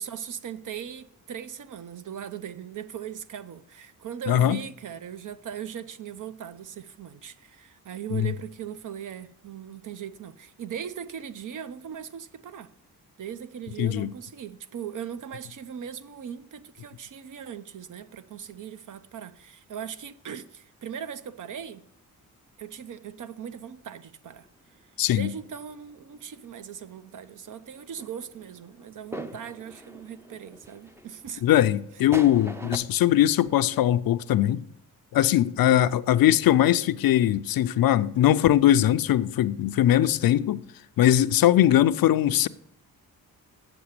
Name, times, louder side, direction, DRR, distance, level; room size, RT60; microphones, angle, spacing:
voice 1, 0.0-12.7 13.2-21.8 22.6-24.5 25.1-31.4 32.6-32.9, right 8 dB, 60° right, 0.7 m, -39 dB
voice 2, 4.3-4.6 8.1-8.3 13.8-14.1 25.0-25.3 31.4-34.6 35.1-40.6 41.0-42.5, left 12 dB, 70° left, 0.6 m, -21 dB
sound 1, 24.4-26.4 26.8-27.2 27.5-32.8, right 1 dB, 5° right, 0.6 m, -43 dB
8.0 x 7.1 x 6.6 m
cardioid pair, 115°, 36 cm